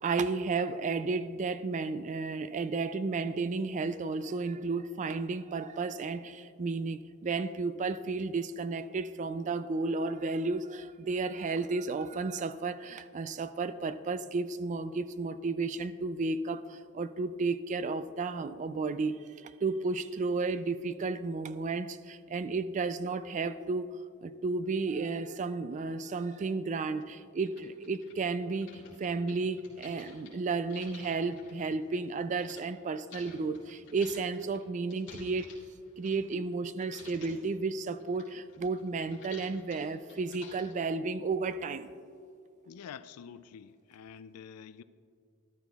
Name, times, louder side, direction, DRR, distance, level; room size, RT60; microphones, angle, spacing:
voice 1, 0.0-35.5 36.0-41.9, right 4 dB, 35° right, 0.3 m, -33 dB
sound 1, 26.3-26.4 27.0-27.1 27.4-32.6 33.1-36.5 36.8-37.5 37.9-40.9, left 4 dB, 55° left, 2.6 m, -53 dB
voice 2, 42.7-44.8, left 7 dB, 85° left, 0.4 m, -47 dB
13.5 x 12.0 x 2.4 m
head